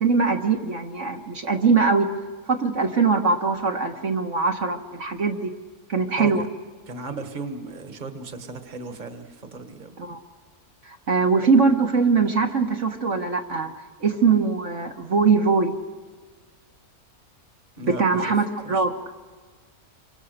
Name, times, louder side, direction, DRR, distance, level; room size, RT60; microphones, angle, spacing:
voice 1, 0.0-2.1 2.5-5.5 5.9-6.4 10.0-10.2 10.8-13.7 14.0-15.7 17.8-18.9, right 4 dB, 55° right, 2 dB, 1.7 m, -22 dB
voice 2, 6.9-10.0 17.8-18.3 18.6-18.8, right 3 dB, 30° right, 7 dB, 1.6 m, -36 dB
28.0 x 24.5 x 6.6 m, 1.4 s
omnidirectional pair, 1.5 m